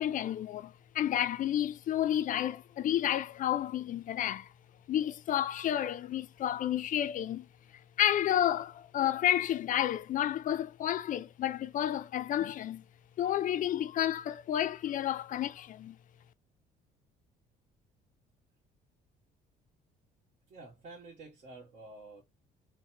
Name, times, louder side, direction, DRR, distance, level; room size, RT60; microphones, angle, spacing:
voice 1, 0.0-4.5 4.9-7.5 8.0-12.8 13.2-16.0, left 11 dB, 50° left, 0.4 m, -31 dB
voice 2, 20.5-22.2, right 2 dB, 45° right, 1.6 m, -49 dB
3.9 x 2.2 x 2.8 m
cardioid pair, 110°, 17 cm